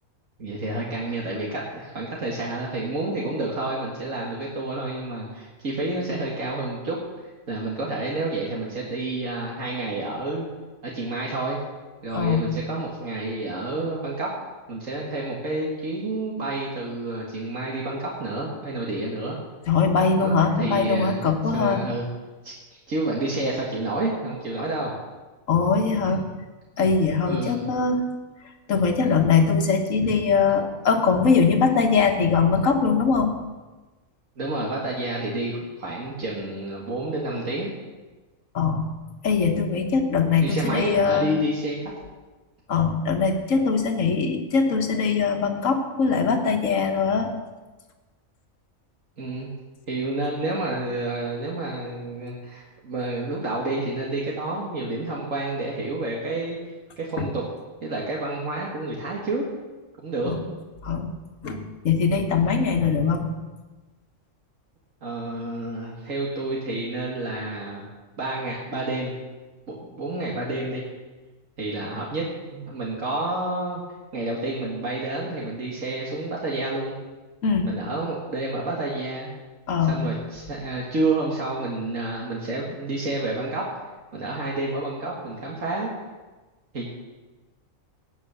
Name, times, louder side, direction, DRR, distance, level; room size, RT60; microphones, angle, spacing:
voice 1, 0.4-7.0 7.2-10.5 10.8-11.6 12.0-14.4 14.7-19.4 20.1-21.2 21.5-22.1 22.4-25.0 26.1-26.2 27.3-27.6 29.0-29.1 30.0-30.1 34.4-37.7 40.4-41.8 49.2-49.5 49.9-57.4 57.8-59.4 60.0-60.3 65.0-67.9 68.2-69.2 69.7-70.8 71.6-73.8 74.1-77.0 77.6-79.3 79.9-83.7 84.1-85.9 86.7-86.9, right 2 dB, 75° right, -3 dB, 2.3 m, -29 dB
voice 2, 12.1-12.5 19.7-21.8 25.5-26.2 26.8-28.1 28.7-33.3 38.5-38.9 39.2-41.3 42.7-47.3 57.2-57.3 60.3-60.4 60.8-61.1 61.4-63.3 77.4-77.7 79.7-80.0, left 5 dB, 75° left, 4 dB, 1.7 m, -21 dB
18.0 x 6.5 x 6.9 m, 1.2 s
omnidirectional pair, 1.4 m